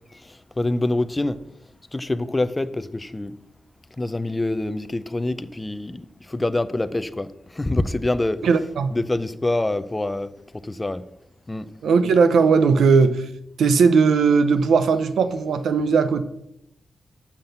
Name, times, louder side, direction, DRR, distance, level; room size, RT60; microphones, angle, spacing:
voice 1, 0.6-1.4 1.9-3.3 4.0-7.3 7.6-8.4 8.9-10.3 10.7-11.0 11.5-11.7, left 2 dB, 15° left, 0.4 m, -25 dB
voice 2, 8.4-9.0 11.8-13.3 13.6-16.2, right 5 dB, 90° right, 0.6 m, -18 dB
7.2 x 5.9 x 6.6 m
wide cardioid pair, 150°, 0 cm